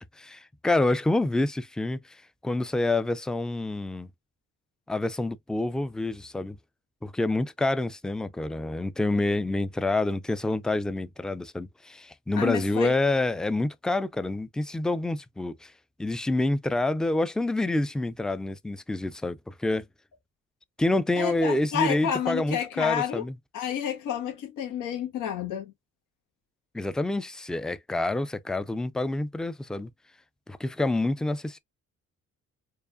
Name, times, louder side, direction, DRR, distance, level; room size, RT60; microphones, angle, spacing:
voice 1, 0.2-2.2 2.4-4.1 4.9-6.6 7.0-15.7 16.0-19.9 20.8-23.3 26.7-29.9 30.5-31.6, left 2 dB, ahead, 0.3 m, -27 dB
voice 2, 12.4-13.0 21.2-23.2 23.5-25.7, left 9 dB, 90° left, 1.3 m, -30 dB
4.6 x 2.4 x 2.5 m
cardioid pair, 90°, 30 cm